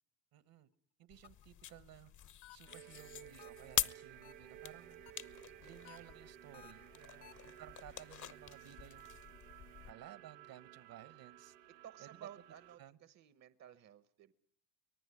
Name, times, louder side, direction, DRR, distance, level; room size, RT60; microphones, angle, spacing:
voice 1, 0.3-0.7 1.0-2.1 2.5-5.0 5.6-6.8 7.4-9.1 9.8-11.6 12.0-12.1 12.8-13.0, right 11 dB, 55° right, 15 dB, 1.5 m, -57 dB
sound 1, 1.1-9.9, left 11 dB, 45° left, 1.0 m, -45 dB
sound 2, 1.2-1.6 2.4-2.9 3.4-3.8 4.2-4.7 5.1-5.5 5.8-7.5, left 13 dB, 65° left, 1.4 m, -60 dB
sound 3, 2.7-12.8, right 13 dB, 85° right, 1.1 m, -56 dB
voice 2, 6.9-7.9 11.8-14.3, right 10 dB, 40° right, 13 dB, 1.1 m, -56 dB
24.5 x 19.0 x 9.9 m, 0.65 s
supercardioid pair, 95°, 43 cm